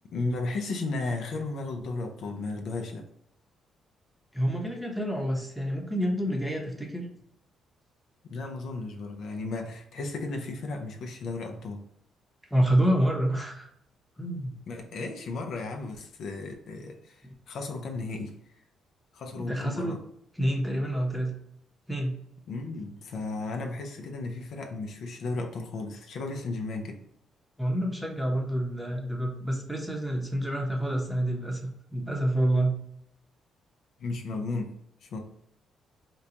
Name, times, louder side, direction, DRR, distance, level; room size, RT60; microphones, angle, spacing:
voice 1, 0.1-3.0 8.3-11.8 14.7-18.4 19.1-20.0 22.5-27.0 34.0-35.2, left 3 dB, 70° left, 2 dB, 0.5 m, -34 dB
voice 2, 4.3-7.0 12.5-13.7 14.2-14.5 19.3-20.0 20.4-21.3 21.9-22.2 27.6-32.7, right 1 dB, 5° right, 0 dB, 0.8 m, -28 dB
3.8 x 2.2 x 2.8 m, 0.75 s
cardioid pair, 90°, 0 cm